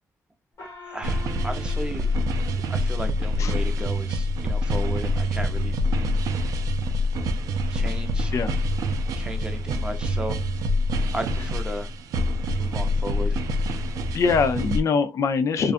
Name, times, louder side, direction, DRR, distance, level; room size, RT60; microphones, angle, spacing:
Gong, 0.6-3.5, left 1 dB, 85° left, 1.3 m, -45 dB
voice 1, 0.6-2.1 2.7-5.7 7.7-8.3 9.2-10.4 11.1-11.9 12.6-13.4, right 1 dB, 15° right, 0.6 m, -35 dB
sound 1, 1.0-14.8, left 1 dB, 85° right, 0.3 m, -25 dB
voice 2, 14.1-15.7, left 5 dB, 60° left, 0.4 m, -23 dB
2.5 x 2.3 x 2.4 m
cardioid pair, 80°, 6 cm